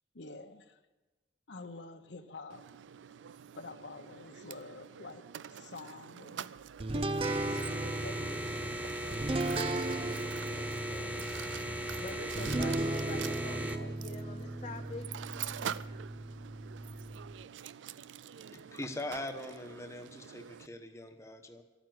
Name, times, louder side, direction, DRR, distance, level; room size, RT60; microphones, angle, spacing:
voice 1, 0.1-0.8 1.5-2.7 3.5-6.5 6.9-8.9, left 3 dB, 75° left, 1.0 m, -48 dB
Mechanisms, 2.5-20.7, right 9 dB, 90° right, 0.4 m, -46 dB
sound 1, 6.8-17.4, right 2 dB, 30° right, 0.5 m, -36 dB
sound 2, 7.2-13.8, right 1 dB, 10° right, 0.8 m, -38 dB
voice 2, 10.4-11.5 11.7-15.1, left 3 dB, 40° left, 0.6 m, -46 dB
voice 3, 18.5-21.6, left 1 dB, 15° left, 1.1 m, -42 dB
13.5 x 9.3 x 9.4 m
head